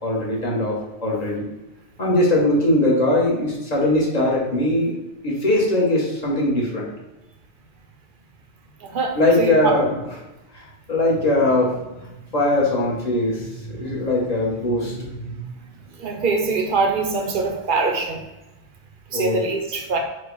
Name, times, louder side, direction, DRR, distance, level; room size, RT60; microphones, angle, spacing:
voice 1, 0.0-1.4 2.0-6.9 9.1-10.0 10.5-12.1 12.3-15.4 19.1-19.4, left 1 dB, 35° left, -4 dB, 1.2 m, -21 dB
voice 2, 8.8-9.7 16.0-18.2 19.1-20.0, right 4 dB, 55° right, 2 dB, 0.7 m, -23 dB
4.5 x 2.2 x 4.5 m, 1.0 s
omnidirectional pair, 1.2 m